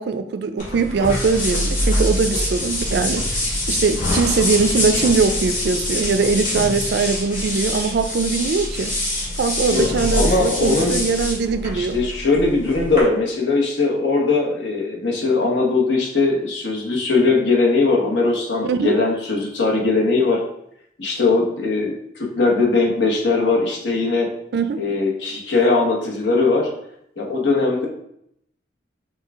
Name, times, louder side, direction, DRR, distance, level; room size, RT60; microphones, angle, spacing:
voice 1, 0.0-3.3 3.7-8.9 9.4-12.0 18.6-19.0 24.5-24.8, right 4 dB, 60° right, 10 dB, 0.3 m, -21 dB
sound 1, 0.6-13.0, left 1 dB, 45° left, 1.7 m, -24 dB
voice 2, 9.7-11.0 11.7-20.4 21.0-21.9 22.3-24.3 24.8-26.7 27.2-27.9, left 3 dB, 80° left, -1 dB, 1.0 m, -20 dB
5.5 x 2.3 x 3.5 m, 0.75 s
head